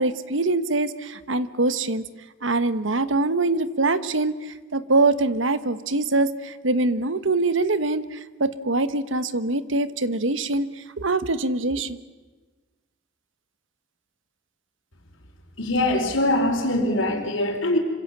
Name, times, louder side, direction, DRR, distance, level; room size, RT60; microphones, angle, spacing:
voice 1, 0.0-2.0 2.4-12.0, right 2 dB, 75° right, 14 dB, 1.2 m, -24 dB
voice 2, 15.6-17.8, left 1 dB, 85° left, 5 dB, 4.6 m, -22 dB
26.5 x 25.5 x 7.4 m, 1.3 s
head